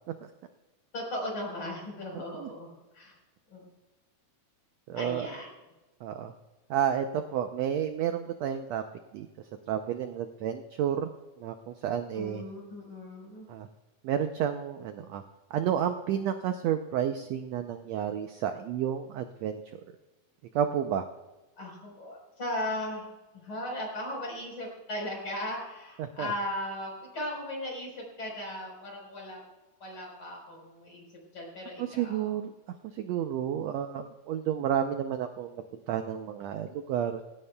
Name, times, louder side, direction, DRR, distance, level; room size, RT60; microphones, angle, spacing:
voice 1, 0.9-3.1 3.5-3.6 4.9-5.5 12.1-13.5 21.6-23.1 23.3-29.4 29.8-31.0 31.3-32.3, left 1 dB, 40° left, -1 dB, 5.1 m, -37 dB
voice 2, 4.9-5.3 6.0-6.3 6.7-8.8 9.1-9.3 9.7-11.1 11.4-12.4 13.5-13.7 14.0-15.2 15.5-19.6 20.5-21.0 26.0-26.3 31.8-32.5 33.0-35.5 35.9-37.2, right 9 dB, 85° right, 7 dB, 1.5 m, -31 dB
20.0 x 16.5 x 2.3 m, 1.1 s
omnidirectional pair, 3.9 m